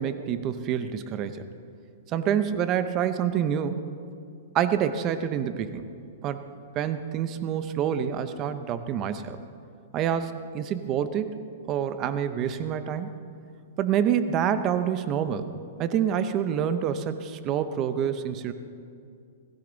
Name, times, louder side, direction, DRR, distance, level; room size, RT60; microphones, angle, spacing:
voice 1, 0.0-1.4 2.1-3.9 4.5-5.8 6.2-6.5 6.8-9.4 9.9-11.4 11.7-13.1 13.8-15.5 15.8-18.5, right 9 dB, 30° right, 11 dB, 0.6 m, -27 dB
17.0 x 16.0 x 4.0 m, 2.4 s
hypercardioid pair, 155°, 0 cm